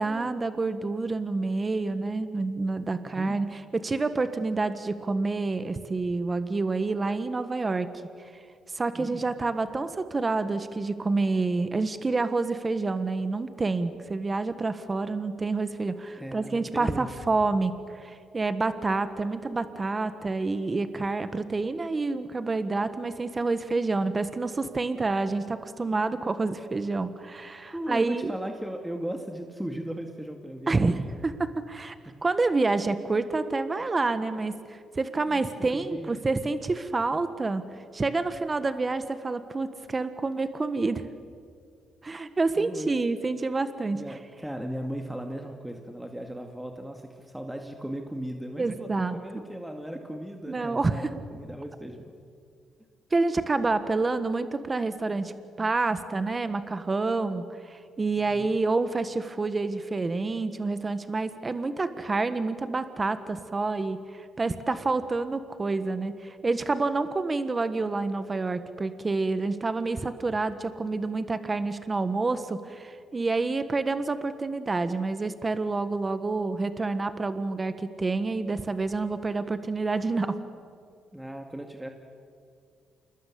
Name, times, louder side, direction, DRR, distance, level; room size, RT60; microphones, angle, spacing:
voice 1, 0.0-7.9 8.7-28.3 30.7-31.9 32.2-37.7 37.9-41.0 42.0-44.2 48.6-49.2 50.5-51.1 53.1-55.3 55.6-80.4, right 3 dB, 25° right, 11 dB, 1.5 m, -28 dB
voice 2, 3.0-3.4 8.9-9.2 16.2-17.1 27.7-31.0 32.1-32.2 35.1-36.2 42.6-42.9 43.9-52.1 58.3-58.5 81.1-81.9, right 1 dB, 5° right, 4 dB, 2.1 m, -37 dB
28.5 x 20.5 x 8.6 m, 2.3 s
cardioid pair, 90°, 0 cm